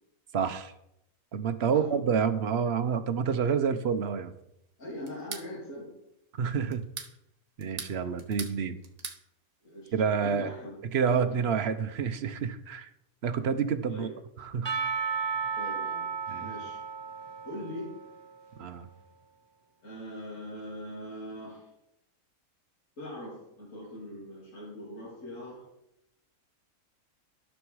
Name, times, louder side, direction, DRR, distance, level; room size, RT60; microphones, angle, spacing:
voice 1, 0.3-0.7 1.3-4.3 6.4-6.9 7.6-8.8 9.9-10.5 10.9-12.9 13.2-14.1 14.4-14.7 16.3-16.5 18.6-18.9, right 6 dB, 55° right, 10 dB, 0.9 m, -28 dB
voice 2, 4.8-5.9 9.6-10.8 11.1-11.3 13.9-14.1 15.6-16.1 16.4-16.8 17.4-17.9 19.8-21.7 23.0-25.6, equal, 60° left, -7 dB, 3.6 m, -41 dB
sound 1, 5.1-5.5 6.7-7.1 7.6-8.6 8.8-9.2, right 6 dB, 70° right, 1.7 m, -40 dB
Percussion / Church bell, 14.7-18.5, right 6 dB, 20° right, 1.2 m, -34 dB
13.5 x 6.4 x 4.7 m, 0.81 s
omnidirectional pair, 1.5 m